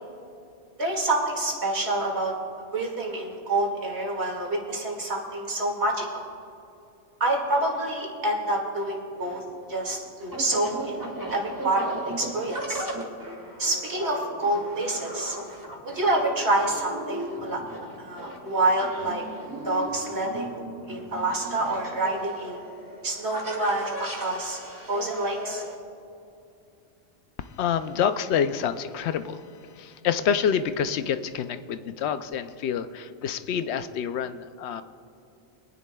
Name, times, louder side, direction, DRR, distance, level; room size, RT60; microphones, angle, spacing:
voice 1, 0.8-2.3 2.7-6.2 7.2-9.4 9.7-11.0 11.3-11.9 12.2-12.9 13.6-15.4 15.8-17.6 18.0-19.2 19.6-20.6 20.9-22.6 23.0-24.6 24.9-25.6, right 2 dB, 80° right, -1 dB, 2.4 m, -27 dB
sound 1, 9.1-25.7, right 1 dB, 20° right, 1.4 m, -37 dB
voice 2, 27.6-29.4 29.8-34.8, left 8 dB, 80° left, 11 dB, 0.8 m, -27 dB
24.5 x 10.0 x 2.3 m, 2.6 s
omnidirectional pair, 1.1 m